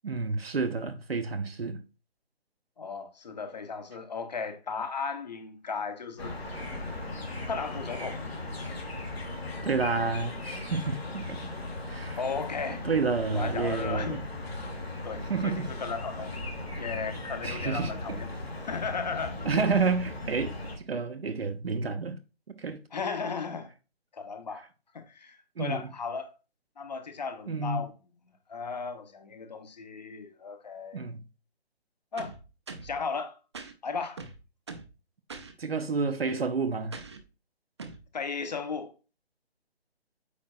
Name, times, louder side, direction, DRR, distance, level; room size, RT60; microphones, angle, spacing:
voice 1, 0.0-1.8 9.6-11.5 11.9-12.2 12.8-14.2 15.1-15.7 17.4-18.2 19.4-22.2 22.6-22.8 25.6-25.9 27.5-27.8 30.9-31.2 35.6-36.9, right 4 dB, 65° right, 0.9 m, -30 dB
voice 2, 2.8-6.3 7.5-8.2 12.2-12.9 13.3-14.2 15.0-16.3 16.8-18.3 18.7-19.5 22.9-23.7 24.1-24.6 24.9-26.3 26.8-27.9 28.5-31.0 32.1-32.3 32.8-33.4 33.8-34.2 38.1-38.9, left 5 dB, 40° left, 1.0 m, -35 dB
sound 1, 6.2-20.8, left 2 dB, 70° left, 2.1 m, -37 dB
sound 2, 32.2-33.0 33.5-33.7 34.2-34.9 35.3-35.5 36.9-37.2 37.8-38.0, right 4 dB, 25° right, 0.6 m, -42 dB
8.4 x 5.1 x 2.5 m
figure-of-eight pair, 145°, 32 cm